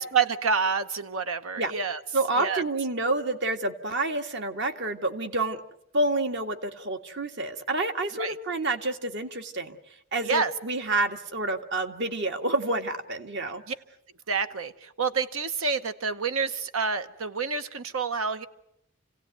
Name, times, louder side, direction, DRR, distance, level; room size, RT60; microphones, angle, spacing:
voice 1, 0.0-2.0 2.4-2.6 8.1-8.4 10.2-10.5 13.7-13.8 14.3-18.5, right 5 dB, 70° right, 10 dB, 1.0 m, -28 dB
voice 2, 2.1-5.6 5.9-9.8 10.1-13.6, right 2 dB, 55° right, 6 dB, 1.9 m, -28 dB
29.0 x 17.0 x 9.2 m, 0.79 s
head